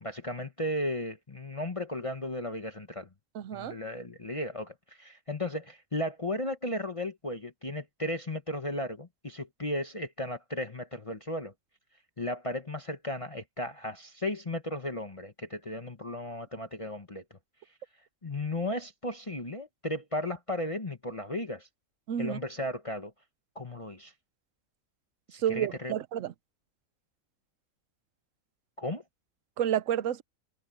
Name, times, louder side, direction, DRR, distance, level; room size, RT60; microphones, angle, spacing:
voice 1, 0.0-3.1 3.5-11.5 12.2-17.2 18.2-21.7 22.2-23.1 23.5-24.1 25.3-25.9 28.8-29.0, left 1 dB, 25° left, 1.3 m, -35 dB
voice 2, 3.3-3.8 22.1-22.4 25.4-26.3 29.6-30.2, right 10 dB, 70° right, 1.1 m, -30 dB
omnidirectional pair, 1.4 m